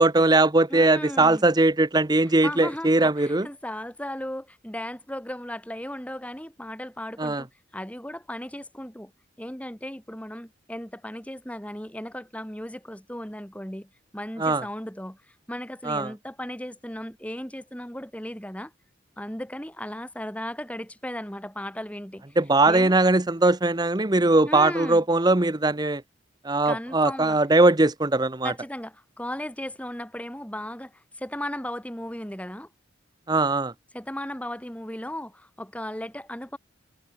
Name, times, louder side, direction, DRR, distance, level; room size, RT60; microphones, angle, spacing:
voice 1, 0.0-3.5 7.2-7.4 14.4-14.6 15.8-16.1 22.4-26.0 26.4-28.5 33.3-33.7, right 2 dB, 20° right, 0.9 m, -20 dB
voice 2, 0.7-1.5 2.4-7.5 7.7-9.1 9.4-18.7 19.2-22.4 22.7-23.0 24.5-25.0 26.6-27.4 28.4-32.7 33.9-36.6, left 1 dB, 5° left, 3.2 m, -36 dB
head